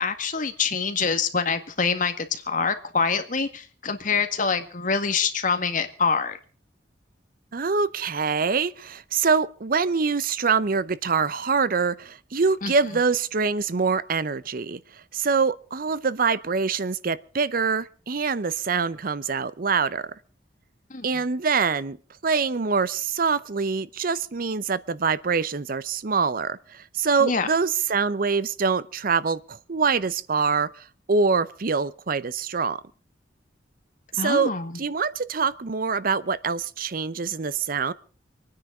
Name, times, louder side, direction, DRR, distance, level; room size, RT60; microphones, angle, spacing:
voice 1, 0.0-6.4 12.6-12.7 20.9-21.1 27.2-27.5 34.2-34.7, left 5 dB, 45° left, 1.7 m, -25 dB
voice 2, 7.5-20.1 21.0-22.0 22.2-32.8 34.1-34.5 34.8-37.9, right 5 dB, 50° right, 0.7 m, -25 dB
25.0 x 9.7 x 4.9 m
head